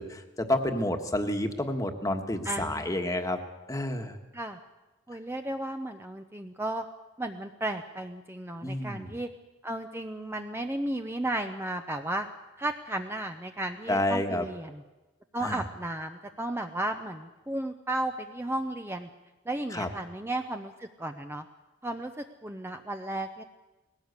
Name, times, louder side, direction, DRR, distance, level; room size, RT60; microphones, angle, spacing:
voice 1, 0.0-3.4 3.7-4.2 8.6-9.2 13.9-14.4 15.4-15.6 19.7-19.9, left 1 dB, 15° left, 6 dB, 1.4 m, -29 dB
voice 2, 2.4-3.0 4.3-4.6 5.1-6.9 7.2-9.3 9.6-12.3 12.6-14.8 15.3-19.1 19.5-21.4 21.8-23.4, right 1 dB, 10° right, 6 dB, 0.6 m, -34 dB
20.0 x 17.0 x 8.1 m, 1.1 s
head